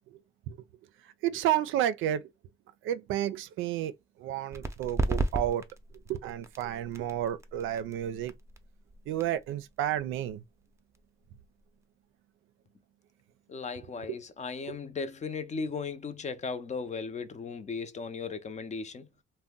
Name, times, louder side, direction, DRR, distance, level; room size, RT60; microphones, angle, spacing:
voice 1, 1.2-2.2 2.8-3.9 4.2-5.7 6.1-8.3 9.1-10.4 14.0-14.2 14.7-14.8, right 12 dB, 85° right, 0.4 m, -31 dB
sound 1, 4.5-11.8, right 2 dB, 15° right, 0.5 m, -36 dB
voice 2, 13.5-19.1, left 5 dB, 35° left, 0.6 m, -36 dB
2.6 x 2.1 x 3.5 m
cardioid pair, 90°, 20 cm